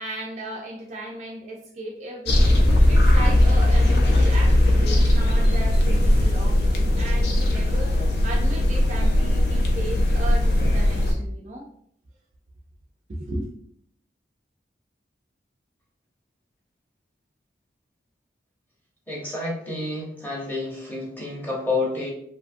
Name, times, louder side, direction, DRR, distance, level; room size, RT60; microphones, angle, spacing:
voice 1, 0.0-2.6 2.9-11.7 13.1-13.5, right 1 dB, 35° right, -1 dB, 0.3 m, -36 dB
sound 1, 2.3-11.1, left 1 dB, 60° left, 0.5 m, -19 dB
voice 2, 19.1-22.1, left 3 dB, 10° left, -4 dB, 0.7 m, -29 dB
2.7 x 2.3 x 2.5 m, 0.67 s
head